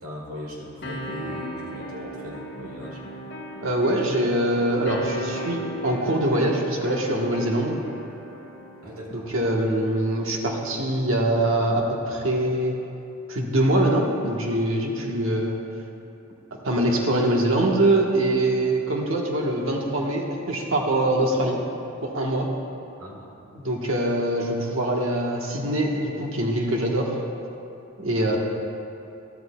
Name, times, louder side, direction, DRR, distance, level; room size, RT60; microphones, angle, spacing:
voice 1, 0.0-3.0 8.8-9.3 23.0-23.3, equal, 90° right, -3 dB, 2.1 m, -38 dB
sound 1, 0.8-8.9, equal, 50° left, 1.0 m, -37 dB
voice 2, 3.6-7.8 9.1-12.7 13.3-15.6 16.6-21.6 22.0-22.5 23.5-27.1 28.0-28.4, right 1 dB, 70° right, 0 dB, 1.2 m, -23 dB
12.5 x 12.5 x 2.3 m, 2.8 s
head